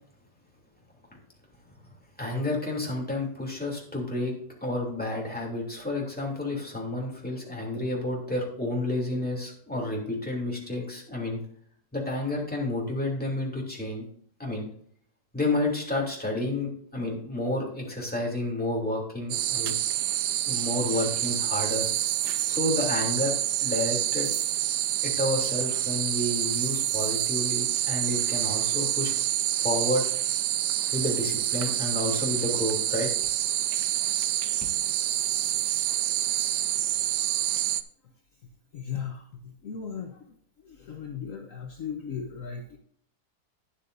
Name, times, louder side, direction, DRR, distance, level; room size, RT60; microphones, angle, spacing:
voice 1, 2.2-4.3 4.6-11.4 11.9-14.0 14.4-14.7 15.3-19.7 20.5-21.9 22.5-23.3 23.6-24.3 25.0-29.1 29.6-30.1 30.9-33.1, left 2 dB, 5° left, -2 dB, 2.9 m, -30 dB
sound 1, 19.3-37.8, right 12 dB, 85° right, 1.2 m, -27 dB
voice 2, 38.7-40.3 40.6-42.8, left 7 dB, 55° left, 2 dB, 1.2 m, -37 dB
12.5 x 9.6 x 2.6 m, 0.62 s
omnidirectional pair, 1.8 m